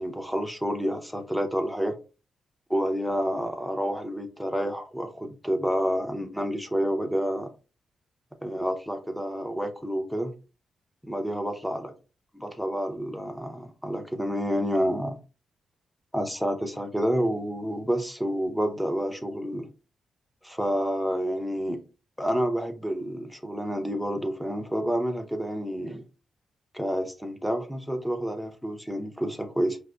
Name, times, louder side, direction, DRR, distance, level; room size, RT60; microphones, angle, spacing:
voice 1, 0.0-1.9 2.7-7.5 8.4-10.3 11.0-11.9 12.3-15.2 16.1-19.7 20.4-21.8 22.2-26.0 26.7-29.8, equal, ahead, 0.5 m, -29 dB
4.8 x 2.4 x 2.2 m
wide cardioid pair, 150°, 0 cm